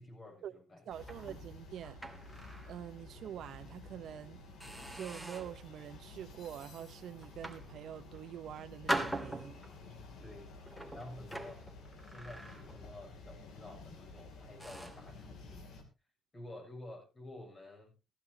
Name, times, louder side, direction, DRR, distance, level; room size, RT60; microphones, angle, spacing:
voice 1, 0.0-0.9 10.2-10.5 10.9-11.6 12.0-15.7 16.3-18.0, left 1 dB, 35° left, 7.1 m, -50 dB
sound 1, 0.9-15.8, left 3 dB, 80° left, 2.8 m, -52 dB
voice 2, 0.9-2.0 2.6-4.4 4.9-9.6, right 10 dB, 70° right, 0.7 m, -46 dB
sound 2, 1.0-2.8 3.2-3.4 4.0-4.1 4.6-5.6 6.2-6.5 7.2-8.3 8.9-9.9 10.7-13.0 13.3-13.6 14.1-14.2 14.6-15.1, right 1 dB, ahead, 2.3 m, -42 dB
15.0 x 15.0 x 2.8 m
cardioid pair, 90°, 0 cm